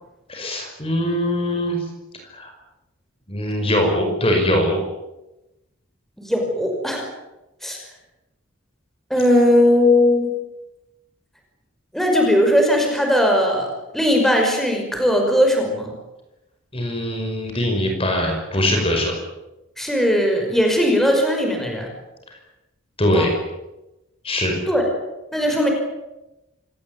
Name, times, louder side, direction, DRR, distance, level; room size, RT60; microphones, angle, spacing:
voice 1, 0.3-1.8 2.3-2.5 3.3-4.8 16.7-19.2 22.3-22.4 23.0-23.3 24.2-24.6, left 1 dB, 25° left, 3 dB, 5.4 m, -21 dB
voice 2, 6.2-7.0 7.6-7.8 9.1-10.3 11.9-15.9 19.8-21.9 23.1-23.3 24.7-24.9 25.3-25.7, left 1 dB, ahead, 2 dB, 5.6 m, -18 dB
27.0 x 19.0 x 9.5 m, 0.98 s
head